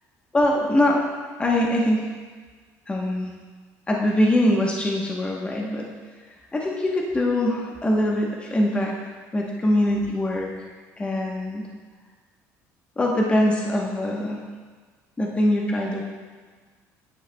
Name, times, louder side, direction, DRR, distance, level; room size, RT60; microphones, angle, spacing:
voice 1, 0.3-1.0 1.4-2.1 2.9-3.3 3.9-5.9 6.5-9.0 9.3-10.7 11.0-11.7 13.0-14.4 15.2-16.0, left 1 dB, 15° left, -1 dB, 1.0 m, -23 dB
9.8 x 9.3 x 2.2 m, 1.5 s
cardioid pair, 110°, 7 cm